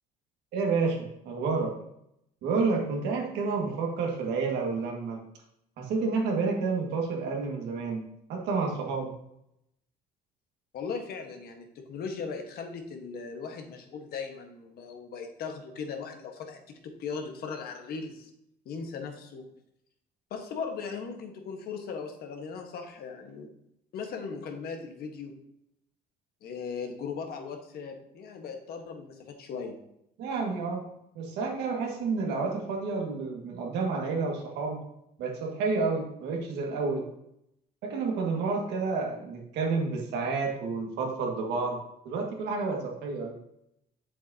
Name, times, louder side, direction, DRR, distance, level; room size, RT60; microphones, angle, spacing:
voice 1, 0.5-1.8 2.4-5.2 5.8-8.0 8.3-9.1 30.2-30.9 31.2-34.8 35.2-37.1 37.8-43.4, right 4 dB, 85° right, 1 dB, 1.9 m, -30 dB
voice 2, 10.7-18.3 18.6-19.4 20.3-23.5 23.9-25.4 26.4-29.8, left 5 dB, 65° left, 4 dB, 1.4 m, -38 dB
7.8 x 7.5 x 2.9 m, 0.79 s
cardioid pair, 110°, 17 cm